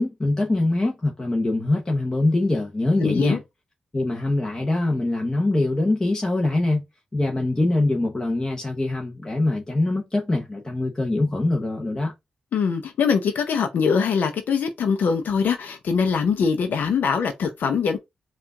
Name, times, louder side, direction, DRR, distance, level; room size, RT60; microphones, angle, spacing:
voice 1, 0.0-3.4 3.9-6.8 7.1-12.1, left 2 dB, 20° left, 0.9 m, -23 dB
voice 2, 3.0-3.4 12.5-18.0, left 6 dB, 85° left, 0.6 m, -22 dB
4.5 x 2.4 x 3.7 m
cardioid pair, 95°, 3 cm